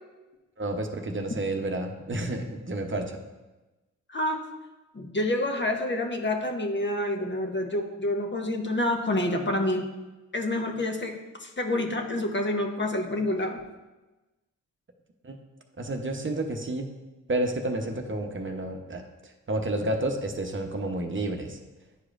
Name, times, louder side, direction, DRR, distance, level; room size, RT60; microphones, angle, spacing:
voice 1, 0.6-3.2 15.2-15.4 15.8-16.9 17.3-21.6, right 1 dB, 40° right, 4 dB, 0.9 m, -30 dB
voice 2, 4.1-4.4 4.9-9.9 10.3-13.6, left 1 dB, 35° left, 3 dB, 1.0 m, -28 dB
9.9 x 4.8 x 2.5 m, 1.1 s
supercardioid pair, 50°, 33 cm